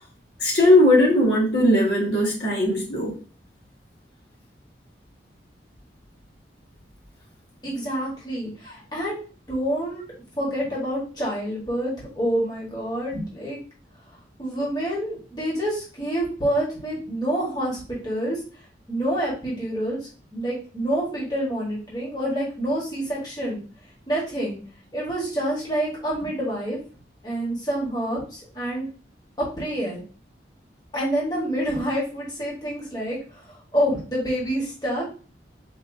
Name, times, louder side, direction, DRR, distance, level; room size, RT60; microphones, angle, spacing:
voice 1, 0.4-3.1, left 1 dB, 65° left, -4 dB, 1.7 m, -18 dB
voice 2, 7.6-9.2 9.5-10.0 10.4-13.6 14.4-18.4 18.9-20.0 20.3-23.6 24.1-24.6 24.9-26.8 27.2-28.9 29.4-30.0 30.9-33.4 33.7-35.0, right 1 dB, 25° left, -6 dB, 1.5 m, -27 dB
4.5 x 2.9 x 2.7 m, 0.37 s
head